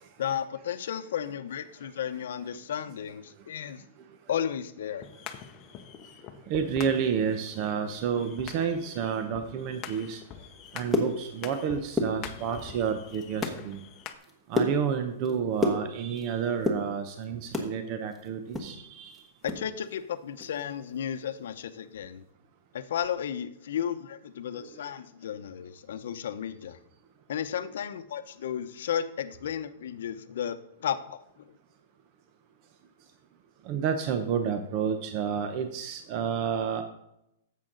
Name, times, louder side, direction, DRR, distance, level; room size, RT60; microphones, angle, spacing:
voice 1, 0.2-3.8 4.3-5.1 19.4-22.2 22.7-26.8 27.3-31.5, left 9 dB, 75° left, 11 dB, 0.8 m, -34 dB
sound 1, 5.0-14.1, left 9 dB, 25° left, 0.8 m, -45 dB
voice 2, 6.5-10.2 10.7-13.8 14.5-19.1 24.6-24.7 33.6-36.8, right 7 dB, 35° right, 7 dB, 0.8 m, -30 dB
sound 2, 10.7-11.6 11.9-12.7 13.1-13.6 14.0-16.3 16.5-17.7 18.1-19.6 19.9-20.0 20.4-20.6 21.0-21.2, left 1 dB, 5° right, 1.3 m, -30 dB
10.5 x 7.6 x 3.9 m, 0.80 s
supercardioid pair, 160°, 0 cm